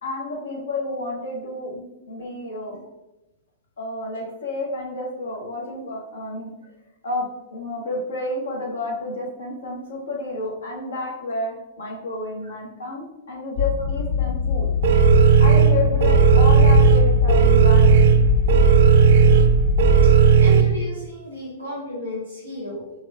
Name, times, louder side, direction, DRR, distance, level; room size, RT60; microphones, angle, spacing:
voice 1, 0.0-2.8 3.8-6.5 7.0-7.2 7.5-14.7 15.4-17.9, left 2 dB, 65° left, -2 dB, 1.2 m, -30 dB
sound 1, 13.6-20.2, left 5 dB, 50° left, 0.3 m, -21 dB
sound 2, 14.8-20.6, right 7 dB, 50° right, 0.4 m, -15 dB
voice 2, 20.4-22.9, left 1 dB, 90° left, -10 dB, 1.3 m, -33 dB
5.3 x 3.1 x 2.3 m, 0.95 s
figure-of-eight pair, 105°, 0 cm